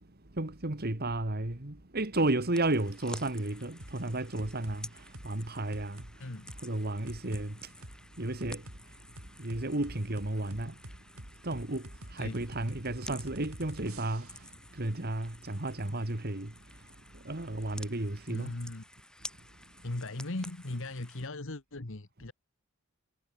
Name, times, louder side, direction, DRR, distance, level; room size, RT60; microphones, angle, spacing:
voice 1, 0.4-4.9 5.2-6.0 6.6-7.5 8.2-8.6 9.4-10.7 11.4-11.8 12.1-14.3 14.7-16.5 17.3-18.5, right 2 dB, 45° right, 2.1 m, -32 dB
sound 1, 2.5-21.3, left 1 dB, 5° left, 4.0 m, -51 dB
sound 2, 3.8-4.0 4.4-4.8 5.1-5.3 5.7-6.1 6.5-6.6 7.1-7.5 7.8-8.0 8.4-8.8 9.2-14.5, right 1 dB, 85° right, 5.6 m, -46 dB
voice 2, 6.2-6.5 12.2-12.4 18.3-18.8 19.8-22.3, left 2 dB, 65° left, 1.6 m, -38 dB
head